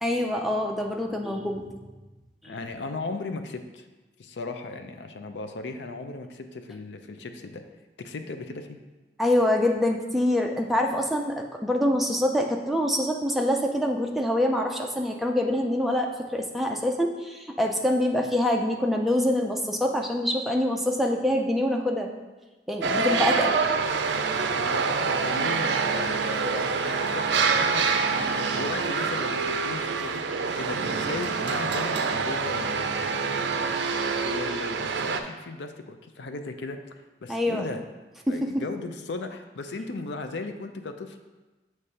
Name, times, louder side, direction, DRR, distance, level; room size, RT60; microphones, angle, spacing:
voice 1, 0.0-1.7 2.4-2.5 9.2-22.1 22.7-23.6 37.3-37.6 38.3-38.6, left 1 dB, ahead, 1 dB, 0.5 m, -25 dB
voice 2, 2.4-3.9 4.2-7.6 8.0-8.8 24.5-30.2 30.6-33.5 34.1-36.8 37.2-37.8 38.3-41.2, left 3 dB, 70° left, 7 dB, 0.5 m, -36 dB
sound 1, 22.8-35.2, right 4 dB, 70° right, 0.5 m, -26 dB
6.5 x 3.2 x 5.5 m, 1.2 s
head